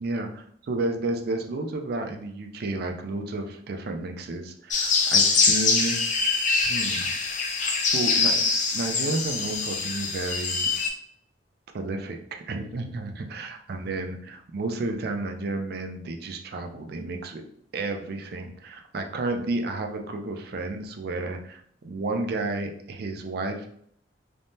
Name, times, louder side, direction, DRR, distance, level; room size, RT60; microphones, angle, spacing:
voice 1, 0.0-6.0 6.6-7.1 7.8-8.4 8.7-10.7 11.7-17.4 17.7-23.7, right 2 dB, 60° right, 4 dB, 0.4 m, -31 dB
sound 1, 4.7-10.9, left 4 dB, 45° left, 0.5 m, -24 dB
3.4 x 2.1 x 2.6 m, 0.66 s
head